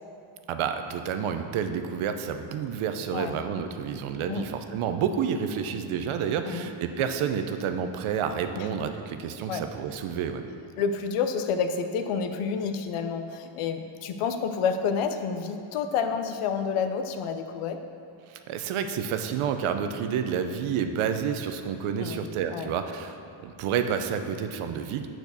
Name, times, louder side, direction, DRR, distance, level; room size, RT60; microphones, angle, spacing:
voice 1, 0.5-10.4 18.3-25.1, right 7 dB, 75° right, 7 dB, 0.7 m, -29 dB
voice 2, 10.8-17.8 22.0-22.7, left 6 dB, 80° left, 7 dB, 0.8 m, -29 dB
8.2 x 4.6 x 6.7 m, 2.6 s
cardioid pair, 175°, 50 cm